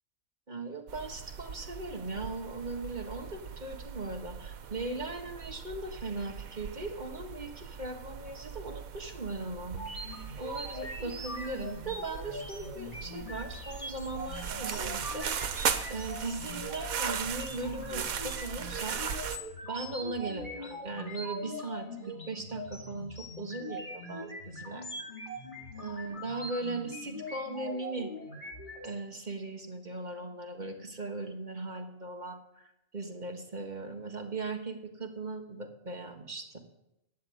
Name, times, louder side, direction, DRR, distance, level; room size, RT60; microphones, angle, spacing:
voice 1, 0.5-9.8 10.4-19.0 19.6-24.9 25.8-28.1 28.8-36.6, right 3 dB, 35° right, 4 dB, 1.6 m, -39 dB
sound 1, 0.9-19.4, right 7 dB, 85° right, 1.4 m, -39 dB
sound 2, 9.7-28.9, equal, 35° left, 2.5 m, -42 dB
12.0 x 8.2 x 9.3 m, 0.86 s
omnidirectional pair, 1.5 m